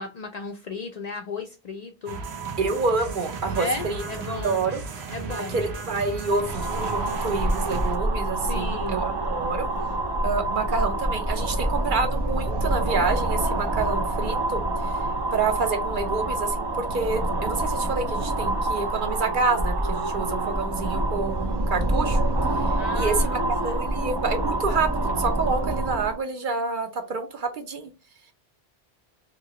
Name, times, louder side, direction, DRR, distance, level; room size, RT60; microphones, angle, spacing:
voice 1, 0.0-2.2 3.6-4.6 5.1-5.6 8.5-9.0 22.8-23.8, left 3 dB, 50° left, 0.5 m, -34 dB
sound 1, 2.1-8.0, right 4 dB, 85° right, 1.1 m, -35 dB
voice 2, 2.6-4.0 4.4-4.8 5.5-9.7 10.2-15.0 15.3-22.2 22.5-27.9, right 4 dB, 55° right, 0.8 m, -28 dB
sound 2, 6.3-26.2, right 1 dB, 40° right, 0.4 m, -26 dB
3.0 x 2.8 x 2.7 m
omnidirectional pair, 1.0 m